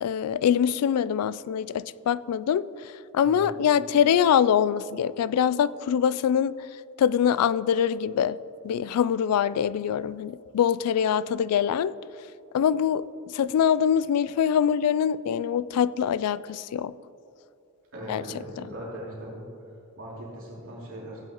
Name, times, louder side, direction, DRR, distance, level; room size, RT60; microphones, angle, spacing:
voice 1, 0.0-2.6 3.1-6.6 7.0-8.4 8.6-11.9 12.5-13.0 13.3-16.9 18.1-18.2 18.6-18.7, left 8 dB, 75° left, 17 dB, 0.3 m, -24 dB
voice 2, 3.2-3.5 17.9-19.5 20.0-21.2, right 1 dB, 65° right, -5 dB, 2.9 m, -39 dB
15.5 x 9.6 x 2.9 m, 2.7 s
head